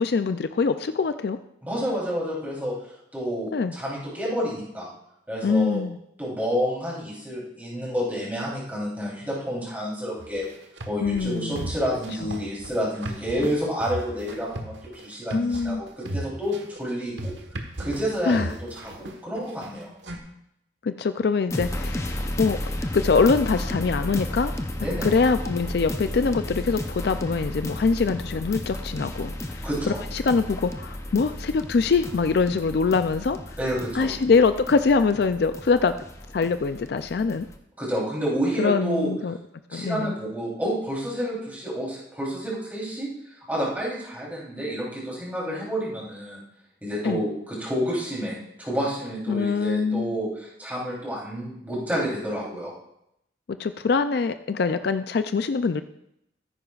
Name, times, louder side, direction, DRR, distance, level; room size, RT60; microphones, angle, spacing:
voice 1, 0.0-1.4 3.5-3.7 5.4-6.0 11.0-11.7 15.3-15.8 18.3-18.5 20.8-22.6 22.9-24.5 25.0-33.4 33.9-35.9 36.3-37.5 38.6-39.4 39.7-40.1 47.0-47.2 49.3-50.1 53.5-55.8, left 4 dB, 60° left, 10 dB, 0.4 m, -23 dB
voice 2, 1.6-2.7 3.1-4.9 5.3-5.8 6.2-10.4 10.9-17.3 17.8-19.9 24.8-25.1 29.6-30.0 33.6-34.2 37.8-39.1 39.7-43.1 43.5-46.4 46.8-52.7, equal, 10° right, -5 dB, 3.3 m, -29 dB
sound 1, 10.2-20.2, right 1 dB, 80° right, 1.3 m, -36 dB
sound 2, 21.5-37.6, left 1 dB, 15° left, 0.6 m, -33 dB
14.0 x 10.0 x 2.4 m, 0.78 s
head